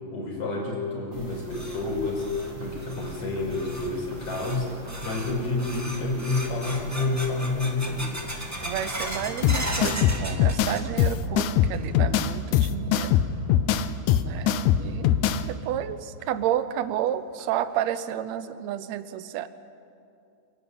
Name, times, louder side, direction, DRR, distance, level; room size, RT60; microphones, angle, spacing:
voice 1, 0.0-2.3 2.6-4.7 5.0-8.2, left 3 dB, 65° left, -3 dB, 6.6 m, -29 dB
sound 1, 1.1-11.6, right 1 dB, 55° right, 5.5 m, -42 dB
sound 2, 1.5-11.3 11.5-12.1 12.5-12.6 13.4-13.5 15.1-15.2 15.6-15.7 16.2-16.3 16.8-16.9 17.4-17.8, right 1 dB, 10° right, 1.3 m, -37 dB
voice 2, 8.6-13.1 14.2-15.1 15.5-19.5, right 11 dB, 75° right, 13 dB, 2.0 m, -31 dB
sound 3, 9.4-15.4, left 9 dB, 90° left, 2.2 m, -22 dB
28.5 x 11.5 x 9.6 m, 2.5 s
omnidirectional pair, 3.3 m